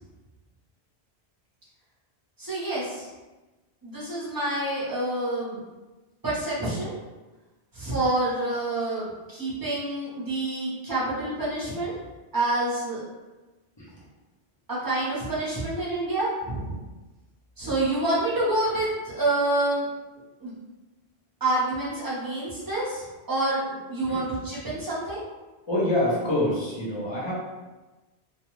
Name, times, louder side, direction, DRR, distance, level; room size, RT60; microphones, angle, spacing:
voice 1, 2.4-3.1 3.8-5.6 6.2-6.9 7.7-11.9 12.3-13.0 14.7-16.8 17.6-19.9 20.4-20.5 21.4-25.2, right 2 dB, 20° right, -8 dB, 0.8 m, -27 dB
voice 2, 25.7-27.3, left 1 dB, 25° left, -7 dB, 0.8 m, -26 dB
2.5 x 2.2 x 3.1 m, 1.2 s
omnidirectional pair, 1.1 m